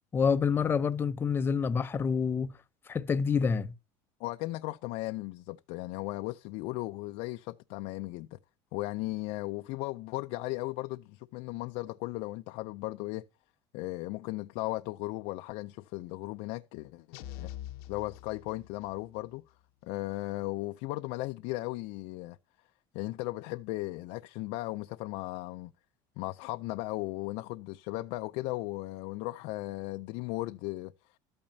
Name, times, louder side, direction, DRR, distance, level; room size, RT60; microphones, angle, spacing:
voice 1, 0.1-2.5 2.9-3.7, left 6 dB, 20° left, 0.5 m, -27 dB
voice 2, 4.2-8.4 8.7-13.3 13.7-17.5 17.9-19.4 19.8-22.4 22.9-25.7 26.2-30.9, left 19 dB, 65° left, 0.5 m, -36 dB
sound 1, 17.1-19.0, left 12 dB, 90° left, 0.9 m, -44 dB
13.0 x 8.7 x 2.7 m
cardioid pair, 165°, 12 cm